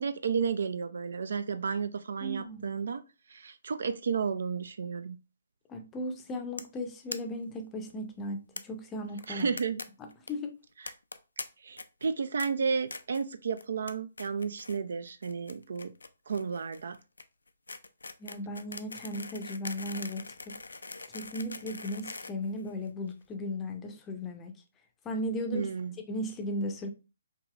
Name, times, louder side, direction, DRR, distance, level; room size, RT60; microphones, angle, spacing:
voice 1, 0.0-3.0 3.3-5.2 9.3-9.8 11.6-15.9 16.3-17.0 25.5-25.9, right 5 dB, 60° right, 0.3 m, -32 dB
voice 2, 2.2-2.7 5.7-9.5 10.0-10.6 18.2-20.6 21.1-24.5 25.0-25.7 26.1-26.9, left 1 dB, 15° left, 0.6 m, -36 dB
sound 1, 6.6-6.8 7.1-7.2 7.4-7.5 7.7-7.8 8.6-8.7 9.2-9.8 10.1-10.3 10.9-11.4 11.8-12.1 12.4-12.5 12.9-13.2 13.6-13.9 14.2-14.8 15.1-23.1, left 3 dB, 75° left, 0.4 m, -42 dB
4.6 x 2.8 x 2.4 m
figure-of-eight pair, 135°, 0 cm